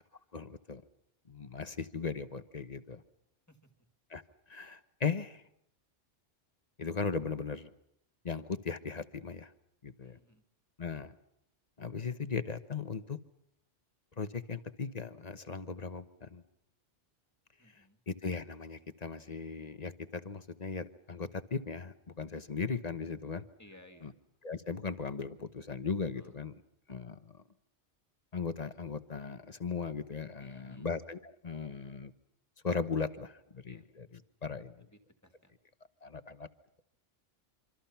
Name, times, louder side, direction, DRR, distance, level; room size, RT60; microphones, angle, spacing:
voice 1, 0.3-0.8 1.3-3.0 4.1-4.2 4.5-5.5 6.8-7.7 8.2-9.5 9.8-10.2 10.8-11.2 11.8-13.2 14.2-16.4 17.7-23.4 24.0-24.1 24.4-26.6 26.9-27.4 28.3-32.1 32.6-34.9 36.0-36.5, left 5 dB, 35° left, 11 dB, 1.1 m, -38 dB
voice 2, 10.0-10.4 17.6-18.0 23.6-24.2 26.2-26.4 30.4-30.9 33.7-33.9 34.8-35.5, left 1 dB, 15° left, 5 dB, 2.5 m, -59 dB
26.0 x 26.0 x 5.8 m, 0.76 s
omnidirectional pair, 1.2 m